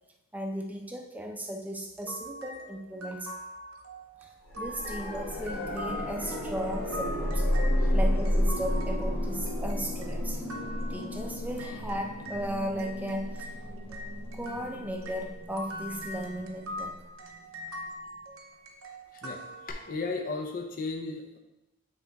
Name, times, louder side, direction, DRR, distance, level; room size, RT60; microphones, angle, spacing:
voice 1, 0.3-3.3 4.2-4.3 4.6-7.5 7.9-10.5 10.9-13.5 14.3-17.0, right 1 dB, 5° right, 2 dB, 0.6 m, -36 dB
sound 1, 2.0-12.5 12.8-20.2, equal, 65° right, 0.8 m, -43 dB
sound 2, 4.5-17.3 19.7-19.8, left 1 dB, 75° left, 2.2 m, -32 dB
voice 2, 19.2-21.4, left 3 dB, 40° left, 3 dB, 0.6 m, -35 dB
8.7 x 3.5 x 4.0 m, 0.95 s
head